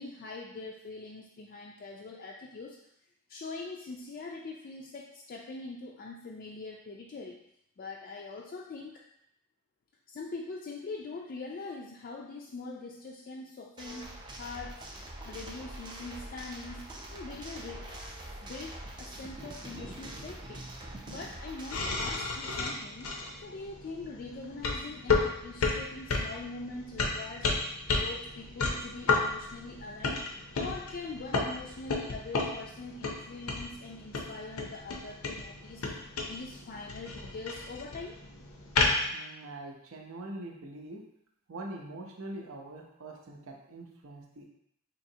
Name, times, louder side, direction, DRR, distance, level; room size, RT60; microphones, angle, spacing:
voice 1, 0.0-2.8 3.3-7.4 7.8-9.0 10.1-14.8 15.3-18.0 18.2-20.7 21.1-23.2 23.4-27.5 27.9-30.3 30.6-38.2, left 3 dB, 45° left, -2 dB, 0.3 m, -43 dB
sound 1, 13.8-22.1, right 1 dB, 20° right, 0.5 m, -44 dB
sound 2, 21.7-39.1, left 3 dB, 85° left, 0.6 m, -33 dB
voice 2, 39.1-41.0 41.5-44.5, right 2 dB, 70° right, 0 dB, 0.6 m, -43 dB
4.2 x 2.9 x 2.7 m, 0.74 s
head